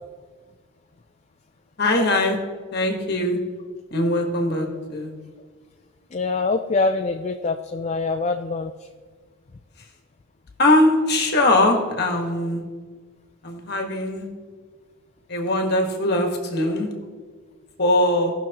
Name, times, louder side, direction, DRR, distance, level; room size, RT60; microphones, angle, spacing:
voice 1, 1.8-2.4 2.7-3.4 3.9-5.1 10.6-12.6 13.4-14.3 15.3-16.9 17.8-18.3, left 1 dB, 50° left, 2 dB, 1.4 m, -21 dB
voice 2, 6.1-8.7, left 3 dB, 30° left, 5 dB, 0.3 m, -24 dB
17.0 x 6.0 x 2.9 m, 1.5 s
head